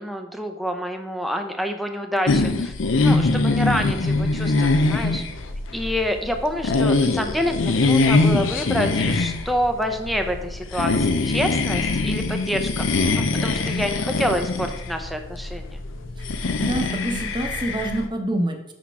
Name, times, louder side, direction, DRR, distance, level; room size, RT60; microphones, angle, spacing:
voice 1, 0.0-2.7 3.0-5.2 5.7-12.9 13.2-15.8, equal, ahead, 5 dB, 0.6 m, -27 dB
sound 1, 2.3-18.0, left 3 dB, 80° left, 0.6 m, -23 dB
voice 2, 16.2-18.7, right 1 dB, 25° right, 4 dB, 0.9 m, -27 dB
6.2 x 5.7 x 4.7 m, 0.92 s
head